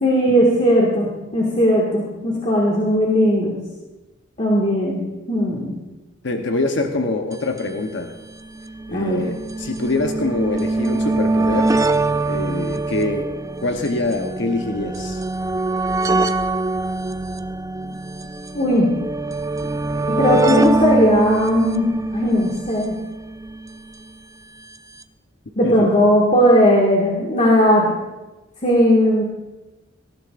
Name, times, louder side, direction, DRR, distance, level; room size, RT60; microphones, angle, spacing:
voice 1, 0.0-3.5 4.4-5.7 8.9-9.2 18.5-18.9 20.2-21.9 22.1-23.0 25.6-28.0 28.6-29.2, equal, 35° left, -4 dB, 1.9 m, -17 dB
voice 2, 6.2-8.2 8.9-11.7 12.3-13.3 13.6-15.2 25.6-25.9, left 2 dB, 65° left, 4 dB, 0.9 m, -24 dB
sound 1, 7.3-7.4 7.6-7.7 8.5-23.8 24.8-24.9 25.0-25.1, right 2 dB, 15° right, 0.4 m, -23 dB
19.0 x 14.5 x 2.5 m, 1.1 s
head